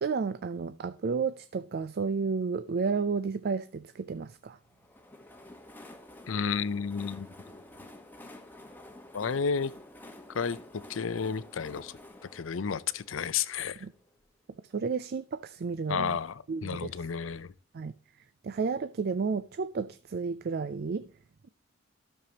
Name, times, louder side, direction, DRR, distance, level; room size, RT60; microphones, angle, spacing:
voice 1, 0.0-4.6 13.8-13.9 14.7-16.2 16.5-16.9 17.7-17.9 18.4-21.1, right 5 dB, 55° right, 0.4 m, -32 dB
Train, 4.6-14.3, left 1 dB, 10° left, 1.1 m, -50 dB
voice 2, 6.3-7.3 9.1-9.7 10.3-12.0 12.3-13.8 15.9-17.5, left 6 dB, 85° left, 0.6 m, -32 dB
12.5 x 6.7 x 2.8 m
head